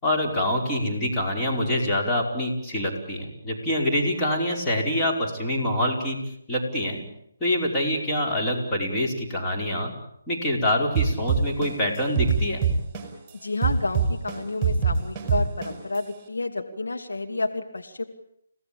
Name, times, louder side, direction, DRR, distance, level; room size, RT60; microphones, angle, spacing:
voice 1, 0.0-6.2 6.5-7.1 7.4-9.9 10.3-12.6, left 1 dB, 15° left, -2 dB, 5.1 m, -25 dB
sound 1, 10.9-13.3 13.6-16.0, right 7 dB, 15° right, 5.9 m, -23 dB
voice 2, 13.3-18.0, left 2 dB, 80° left, 5 dB, 2.7 m, -30 dB
30.0 x 17.5 x 8.8 m, 0.77 s
figure-of-eight pair, 150°, 0 cm